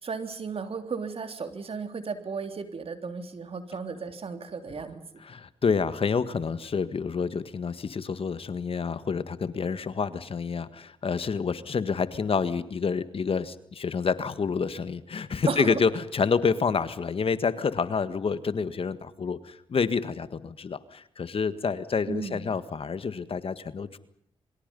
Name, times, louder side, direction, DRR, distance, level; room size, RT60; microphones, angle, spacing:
voice 1, 0.0-5.0 15.5-15.8 22.1-22.5, right 5 dB, 55° right, 8 dB, 3.3 m, -34 dB
voice 2, 5.2-24.0, left 5 dB, 55° left, 13 dB, 1.7 m, -28 dB
27.0 x 24.5 x 5.5 m, 0.70 s
supercardioid pair, 50°, 11 cm